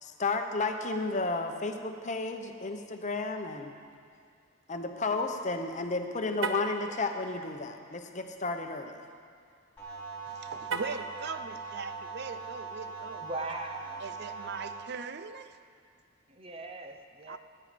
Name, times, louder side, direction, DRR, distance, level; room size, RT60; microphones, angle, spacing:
voice 1, 0.0-3.7 4.7-9.0, left 3 dB, 35° left, 5 dB, 0.9 m, -32 dB
Car, 6.3-6.8 10.6-11.1, right 4 dB, 85° right, 1.0 m, -34 dB
sound 1, 9.8-14.8, right 4 dB, 10° left, 3.2 m, -41 dB
voice 2, 10.3-13.3 14.0-15.6 17.3-17.4, right 5 dB, 55° right, 11 dB, 0.5 m, -40 dB
voice 3, 13.2-14.0 16.3-17.4, right 2 dB, 30° right, 5 dB, 0.8 m, -39 dB
19.0 x 9.7 x 5.1 m, 2.2 s
head